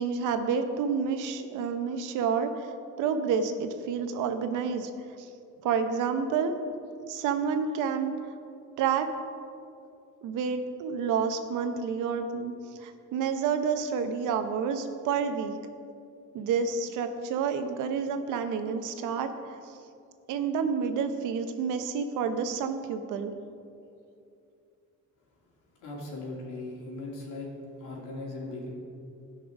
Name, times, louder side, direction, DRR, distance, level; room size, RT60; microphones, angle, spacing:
voice 1, 0.0-2.5 3.0-4.9 5.6-6.5 7.1-8.1 8.8-9.1 10.2-12.5 12.8-15.6 16.3-19.3 20.3-23.3, right 6 dB, 85° right, 8 dB, 1.0 m, -29 dB
voice 2, 25.8-27.5 27.8-28.7, left 2 dB, 85° left, -3 dB, 3.2 m, -38 dB
17.0 x 5.9 x 5.0 m, 2.5 s
cardioid pair, 165°, 30 cm